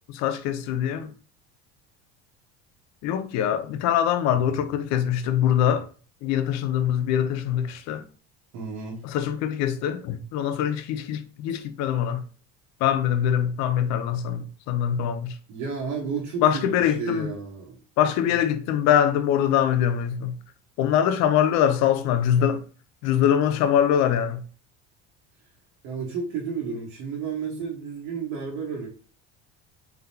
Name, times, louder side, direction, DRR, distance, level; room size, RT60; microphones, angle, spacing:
voice 1, 0.1-1.1 3.0-5.9 6.2-8.0 9.0-12.2 12.8-15.3 16.4-17.3 18.0-20.3 20.8-22.6 23.0-24.4, left 9 dB, 65° left, 0.6 m, -23 dB
voice 2, 8.5-9.0 15.5-17.8 18.2-18.4 25.8-28.9, right 5 dB, 75° right, 1.3 m, -32 dB
3.9 x 3.5 x 2.7 m
cardioid pair, 135°, 30 cm